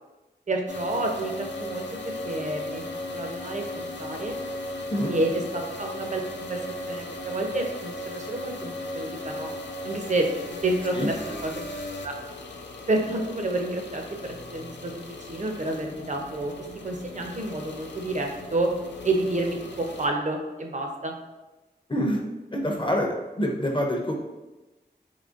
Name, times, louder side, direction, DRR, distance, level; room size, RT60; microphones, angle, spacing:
voice 1, 0.5-2.8 3.1-4.4 5.1-6.6 6.9-9.5 9.8-11.5 12.0-12.2 12.9-16.5 16.8-18.7 19.0-21.1, right 2 dB, 45° right, 2 dB, 0.5 m, -29 dB
sound 1, 0.7-20.1, left 1 dB, 90° left, 0.5 m, -37 dB
voice 2, 21.9-22.2 22.5-24.2, equal, 25° left, 1 dB, 0.5 m, -26 dB
3.8 x 3.0 x 2.5 m, 1.1 s
wide cardioid pair, 75°, 18 cm